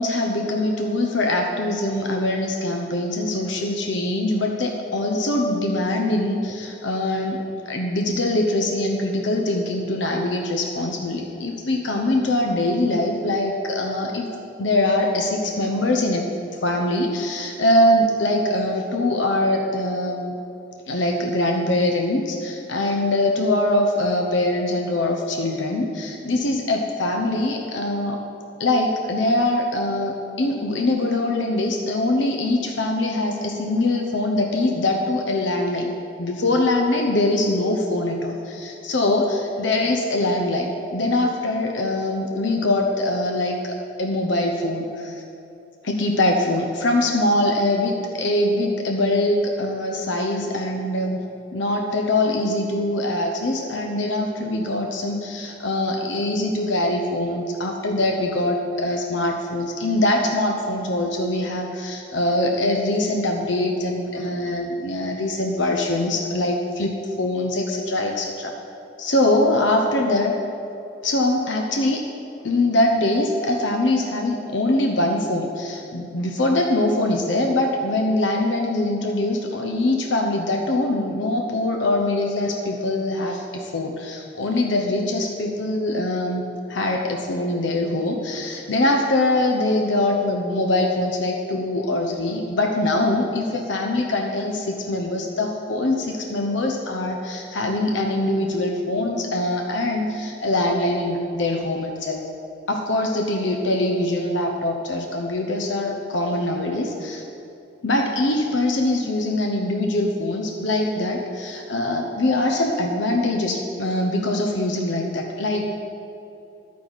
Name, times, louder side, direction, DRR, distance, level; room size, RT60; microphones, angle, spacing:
voice 1, 0.0-14.3 14.6-16.3 16.6-20.3 20.9-28.2 28.6-35.9 36.2-45.2 45.8-51.2 51.5-68.5 69.0-70.4 71.0-72.0 72.4-102.2 102.7-107.2 107.8-115.6, left 1 dB, 70° left, 2 dB, 0.8 m, -23 dB
11.5 x 9.5 x 4.1 m, 2.8 s
head